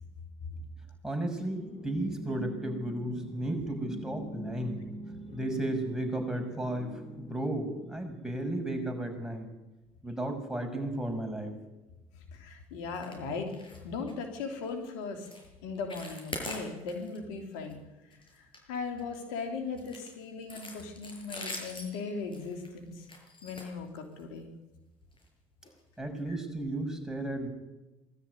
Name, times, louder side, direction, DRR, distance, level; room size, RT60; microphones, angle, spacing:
voice 1, 1.0-4.8 5.3-9.5 10.0-11.5 26.0-27.5, right 1 dB, 5° right, 2 dB, 6.2 m, -34 dB
sound 1, 1.4-7.8, equal, 55° left, 7.9 m, -44 dB
voice 2, 12.3-13.5 13.8-15.3 15.6-17.8 18.7-23.1 23.4-24.5 26.3-26.4, left 4 dB, 90° left, 5 dB, 3.1 m, -38 dB
sound 2, 12.9-13.2 13.5-13.8 14.1-14.2 14.7-14.9 15.2-15.5 15.7-17.2 17.5-17.7 18.1-19.2 19.8-24.4 25.1-25.3 25.6-25.7 26.2-26.3, left 2 dB, 35° left, 7.7 m, -43 dB
20.5 x 13.0 x 9.7 m, 1.0 s
supercardioid pair, 70°, 15 cm